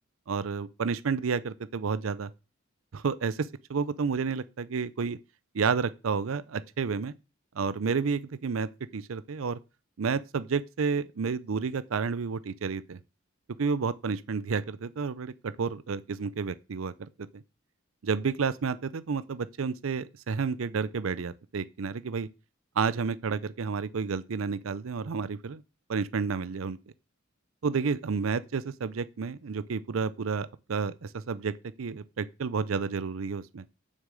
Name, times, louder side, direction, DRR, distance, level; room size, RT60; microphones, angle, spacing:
voice 1, 0.3-2.3 2.9-5.2 5.5-7.1 7.6-9.6 10.0-13.0 13.6-17.1 17.3-17.4 18.0-22.3 22.8-25.6 25.9-26.8 27.6-33.6, right 5 dB, 75° right, 0.5 m, -30 dB
7.4 x 6.4 x 7.6 m
head